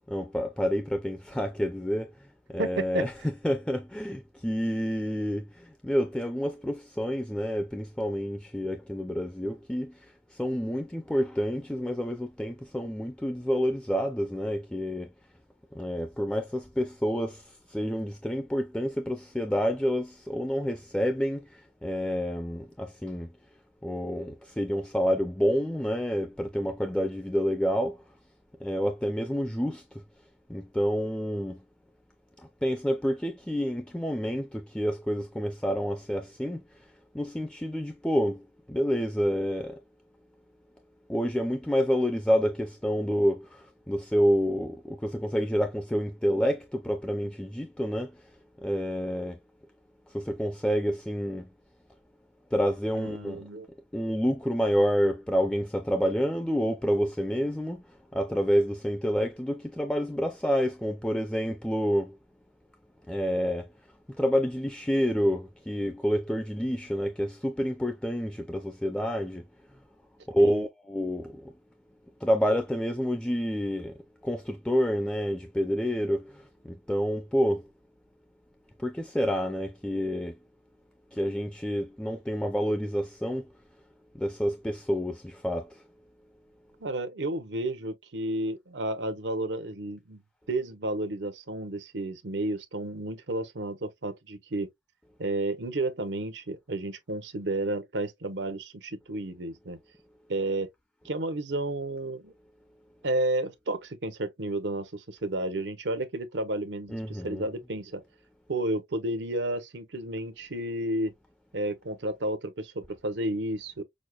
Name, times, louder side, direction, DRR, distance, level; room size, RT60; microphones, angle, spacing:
voice 1, 0.1-2.1 2.5-9.9 10.3-15.1 15.7-17.4 17.7-23.3 23.8-28.0 28.6-30.0 30.5-31.6 32.6-36.6 37.1-39.8 41.1-48.1 48.6-49.4 50.1-51.5 52.5-53.4 53.9-57.8 58.1-62.2 63.1-63.7 64.2-69.4 70.3-71.5 72.2-74.0 74.2-77.7 78.8-80.4 81.1-83.5 84.1-85.8 106.9-107.5, equal, 5° left, 0.4 m, -28 dB
voice 2, 2.6-3.1 52.9-53.7 70.4-70.6 86.8-90.2 90.5-94.7 95.2-99.8 100.3-100.7 101.0-102.3 103.0-108.0 108.5-111.1 111.5-113.8, right 2 dB, 90° right, 0.8 m, -32 dB
6.3 x 2.1 x 2.2 m
head